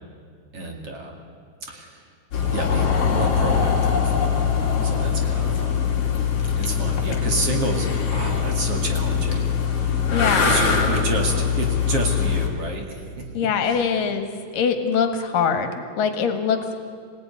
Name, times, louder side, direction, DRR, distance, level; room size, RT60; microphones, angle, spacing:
voice 1, 0.5-1.1 1.7-2.0 2.5-4.2 4.8-5.8 6.6-9.5 10.4-12.9 13.6-13.9, right 2 dB, 45° right, 2 dB, 3.0 m, -29 dB
sound 1, 2.3-12.5, left 7 dB, 45° left, 3.4 m, -22 dB
voice 2, 10.1-10.6 13.3-15.7 16.0-16.8, left 6 dB, 75° left, 7 dB, 3.3 m, -23 dB
26.0 x 17.0 x 9.7 m, 2.1 s
omnidirectional pair, 3.9 m